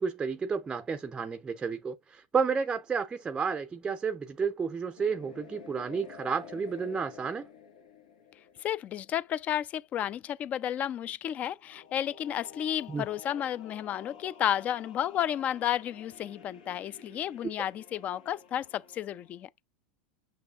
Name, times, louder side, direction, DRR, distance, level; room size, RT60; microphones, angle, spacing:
voice 1, 0.0-7.5 12.9-13.0, right 5 dB, 20° right, 0.5 m, -31 dB
sound 1, 5.0-9.5 11.6-19.4, left 7 dB, 80° left, 1.5 m, -51 dB
voice 2, 8.6-19.5, left 10 dB, 35° left, 0.5 m, -32 dB
6.8 x 6.0 x 2.4 m
hypercardioid pair, 95°, 4 cm